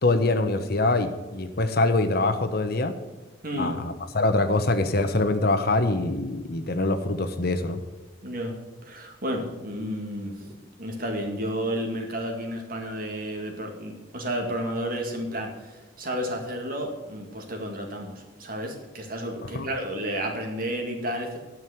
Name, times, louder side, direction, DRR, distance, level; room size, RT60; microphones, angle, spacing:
voice 1, 0.0-2.9 3.6-7.8 19.5-19.7, left 2 dB, 50° left, 9 dB, 0.9 m, -24 dB
voice 2, 3.4-3.8 8.2-8.6 8.8-10.3 10.8-21.4, equal, 45° right, 2 dB, 2.2 m, -31 dB
11.0 x 6.4 x 7.8 m, 1.2 s
head